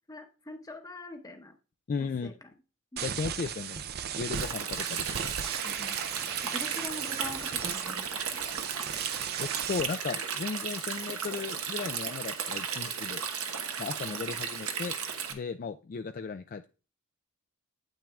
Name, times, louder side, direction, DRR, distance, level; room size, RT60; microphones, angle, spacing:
voice 1, 0.1-1.6 2.2-2.5 2.9-3.1 5.6-6.0 6.4-8.5 14.1-14.2, left 2 dB, 15° left, 5 dB, 0.9 m, -44 dB
voice 2, 1.9-2.3 3.0-3.8 4.2-5.3 9.4-13.2 13.8-15.0 15.3-16.7, left 5 dB, 40° left, 8 dB, 0.3 m, -36 dB
sound 1, 3.0-9.8, right 8 dB, 45° right, 0.5 m, -36 dB
Stream, 4.3-15.3, right 7 dB, 80° right, 1.1 m, -35 dB
8.9 x 8.6 x 2.3 m, 0.34 s
head